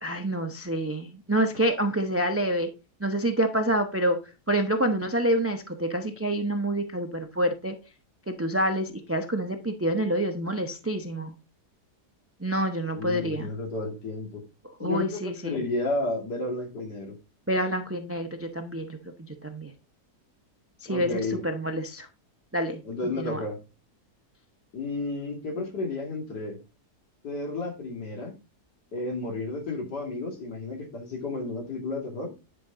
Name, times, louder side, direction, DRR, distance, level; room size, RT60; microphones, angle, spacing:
voice 1, 0.0-2.7 3.0-4.2 4.5-7.8 8.3-11.3 12.4-13.5 14.8-15.6 17.5-19.0 19.3-19.7 20.8-22.1 22.5-22.8 23.2-23.4, right 1 dB, 20° right, 0.4 m, -27 dB
voice 2, 12.9-14.4 14.8-17.2 20.9-21.4 22.8-23.6 24.7-26.6 27.2-28.3 28.9-32.3, left 2 dB, 85° left, 3.0 m, -32 dB
10.5 x 5.1 x 3.8 m
omnidirectional pair, 1.7 m